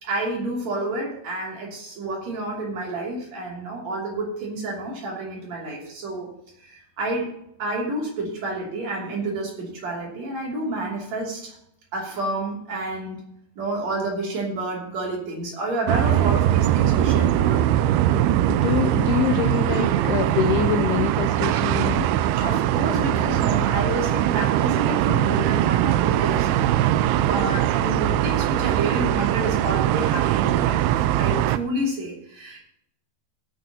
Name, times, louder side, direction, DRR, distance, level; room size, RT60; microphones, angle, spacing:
voice 1, 0.0-6.3 6.6-7.3 7.6-11.6 11.9-13.2 13.6-17.6 22.4-32.6, right 2 dB, 45° right, -2 dB, 3.8 m, -29 dB
sound 1, 15.9-31.6, right 12 dB, 85° right, 2.5 m, -21 dB
voice 2, 18.5-22.2, left 10 dB, 85° left, 5 dB, 2.7 m, -25 dB
17.0 x 9.3 x 2.9 m, 0.75 s
omnidirectional pair, 4.5 m